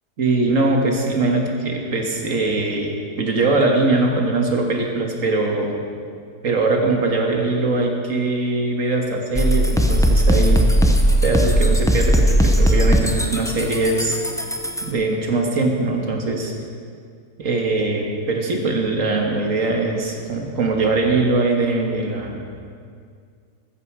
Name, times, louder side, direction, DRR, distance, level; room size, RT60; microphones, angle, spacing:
voice 1, 0.2-5.8 6.4-10.6 11.2-14.2 14.8-16.5 17.4-22.4, right 3 dB, 55° right, 1 dB, 2.1 m, -21 dB
sound 1, 9.4-14.9, equal, 5° left, 0.4 m, -18 dB
15.0 x 14.0 x 4.8 m, 2.2 s
omnidirectional pair, 1.7 m